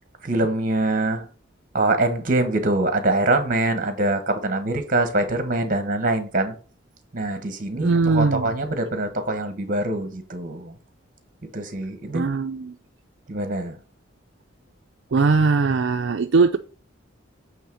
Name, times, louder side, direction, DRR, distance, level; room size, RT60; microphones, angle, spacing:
voice 1, 0.2-1.3 1.7-6.5 7.1-10.7 11.5-12.3 13.3-13.8, right 2 dB, 45° right, 1.3 m, -24 dB
voice 2, 7.7-8.5 12.1-12.8 15.1-16.6, right 4 dB, 65° right, 0.5 m, -20 dB
8.4 x 3.3 x 6.2 m
head